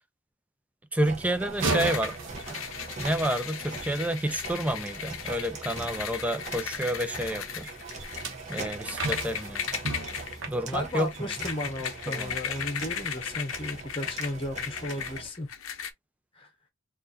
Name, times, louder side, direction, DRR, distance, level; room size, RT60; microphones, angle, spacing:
voice 1, 0.9-2.1 2.5-2.6 3.0-7.7 8.5-9.6 10.5-11.1 12.1-12.3, right 1 dB, 5° right, 0.4 m, -29 dB
sound 1, 1.0-15.3, right 3 dB, 35° right, 0.7 m, -42 dB
sound 2, 1.5-4.1 7.8-11.6 12.0-12.3 12.8-12.9, right 3 dB, 70° right, 1.0 m, -35 dB
sound 3, 1.7-15.9, left 8 dB, 75° left, 0.6 m, -37 dB
voice 2, 10.7-15.5 16.4-16.5, left 1 dB, 25° left, 1.0 m, -34 dB
4.2 x 2.6 x 2.5 m
head